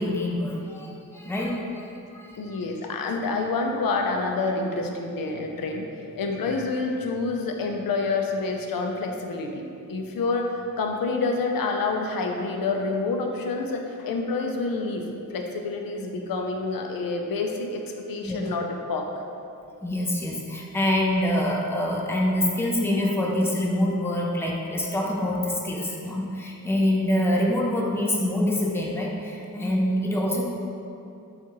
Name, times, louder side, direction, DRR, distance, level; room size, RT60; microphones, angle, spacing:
voice 1, 0.0-2.6 18.2-18.4 19.8-30.4, left 1 dB, 5° left, -2 dB, 0.4 m, -25 dB
voice 2, 2.4-5.9 6.1-15.0 15.3-17.8 18.1-19.1, left 3 dB, 85° left, 2 dB, 0.5 m, -28 dB
7.2 x 2.5 x 2.9 m, 2.7 s
wide cardioid pair, 145°, 33 cm